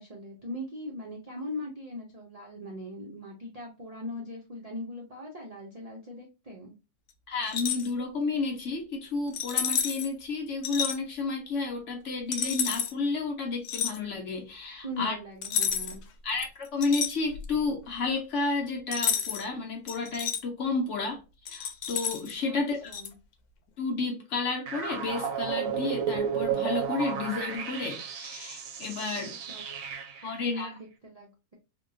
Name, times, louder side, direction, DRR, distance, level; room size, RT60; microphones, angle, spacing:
voice 1, 0.0-6.7 14.8-16.0 22.4-22.6 22.8-23.1 29.1-29.8 30.2-31.6, left 1 dB, 50° right, 0.4 m, -40 dB
voice 2, 7.3-15.1 16.2-21.2 21.5-22.9 23.8-29.4 30.2-30.7, left 3 dB, 60° left, 1.0 m, -31 dB
sound 1, 7.4-7.9 9.3-10.1 10.6-11.0 12.3-12.9 13.6-14.0 15.4-16.0 16.4-17.6 18.9-19.5 19.9-20.4 21.5-22.3 22.9-23.1, left 8 dB, 85° left, 1.1 m, -30 dB
sound 2, 24.7-30.4, right 8 dB, 70° right, 1.0 m, -33 dB
3.4 x 2.2 x 2.5 m
omnidirectional pair, 1.6 m